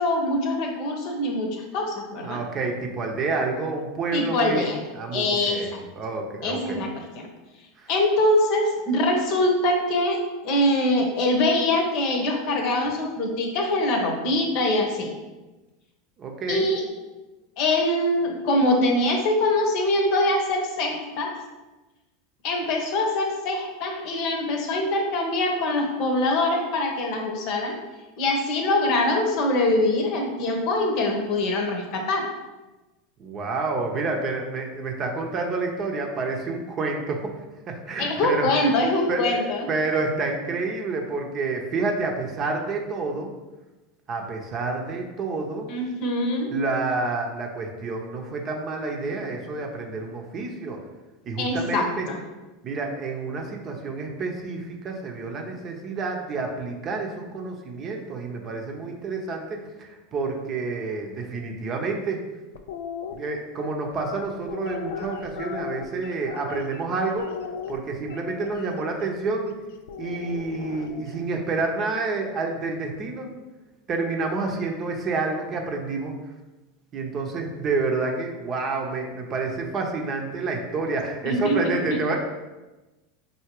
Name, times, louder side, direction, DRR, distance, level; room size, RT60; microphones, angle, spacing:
voice 1, 0.0-2.4 4.1-4.8 5.1-5.6 6.4-7.3 7.9-10.2 10.4-15.1 16.5-16.8 17.6-21.3 22.4-27.7 28.2-32.3 38.0-39.6 45.7-46.5 51.4-52.2 81.2-81.6 81.9-82.0, left 1 dB, 60° left, 2 dB, 0.9 m, -23 dB
voice 2, 2.2-4.7 4.9-6.8 7.8-7.9 16.2-16.7 33.2-37.4 37.7-38.7 39.1-43.3 44.1-45.7 46.5-50.8 51.3-52.1 52.6-62.2 63.1-67.3 67.7-69.5 70.0-73.3 73.9-76.2 76.9-82.2, right 3 dB, 40° right, 2 dB, 0.7 m, -29 dB
sound 1, 62.5-63.1 63.9-66.8 67.2-68.7 69.9-71.2, left 7 dB, 75° left, 0.3 m, -36 dB
4.7 x 2.8 x 3.0 m, 1.1 s
hypercardioid pair, 100°, 0 cm